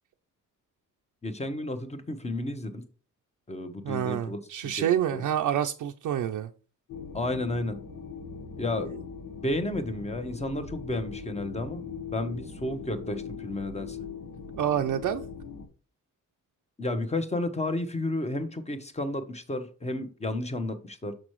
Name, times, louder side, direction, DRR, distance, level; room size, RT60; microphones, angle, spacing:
voice 1, 1.2-2.8 3.5-4.4 4.8-4.9 5.1-5.2 7.1-7.8 8.6-8.9 9.4-11.8 12.1-14.0 16.8-21.1, left 1 dB, 20° left, 1.0 m, -32 dB
voice 2, 3.8-6.5 14.5-15.2, right 10 dB, 70° right, 0.5 m, -28 dB
sound 1, 6.9-15.7, left 5 dB, 90° left, 1.4 m, -40 dB
6.5 x 6.0 x 3.1 m
wide cardioid pair, 145°, 32 cm